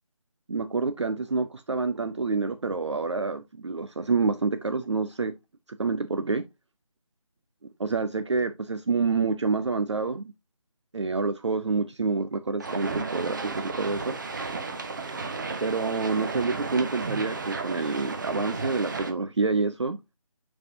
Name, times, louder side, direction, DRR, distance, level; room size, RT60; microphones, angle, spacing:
voice 1, 0.5-5.4 5.8-6.4 7.6-10.2 10.9-14.2 15.6-20.0, right 4 dB, 55° right, 0.6 m, -27 dB
sound 1, 12.6-19.1, right 4 dB, 35° right, 1.1 m, -33 dB
7.0 x 5.5 x 2.7 m
figure-of-eight pair, 155°, 18 cm